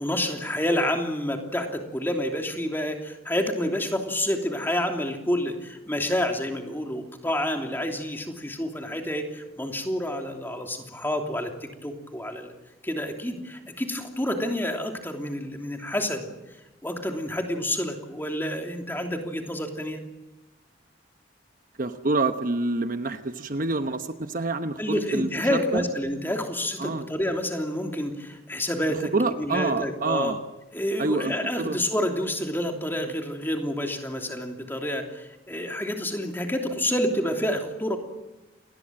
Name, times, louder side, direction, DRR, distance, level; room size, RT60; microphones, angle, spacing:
voice 1, 0.0-11.5 11.8-12.5 12.8-16.3 16.8-20.0 24.8-29.1 29.4-30.3 30.7-38.0, left 1 dB, 10° left, 3 dB, 3.1 m, -28 dB
voice 2, 21.8-25.8 26.8-27.1 29.1-30.4 31.0-31.8, right 2 dB, 45° right, 8 dB, 1.1 m, -27 dB
28.0 x 20.5 x 7.7 m, 1.0 s
head